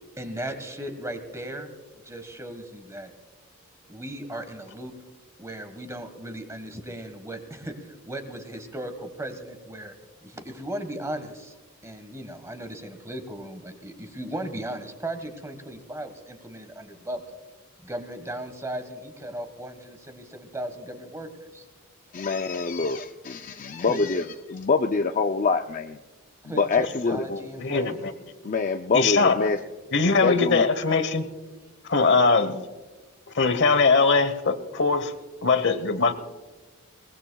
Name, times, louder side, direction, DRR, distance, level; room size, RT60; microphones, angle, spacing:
voice 1, 0.1-1.7 2.0-3.1 3.8-4.9 5.4-9.9 10.2-11.6 11.8-17.4 17.8-21.6 23.6-24.0 26.4-28.0, right 1 dB, 15° right, 1.4 m, -37 dB
voice 2, 22.1-26.0 26.6-27.2 28.4-29.6 30.0-30.7, left 4 dB, 35° left, 0.4 m, -25 dB
voice 3, 27.3-28.1 28.9-29.5 29.9-31.3 31.9-32.6 33.3-35.1 35.4-36.1, left 4 dB, 55° left, 1.0 m, -21 dB
22.5 x 19.5 x 2.3 m
head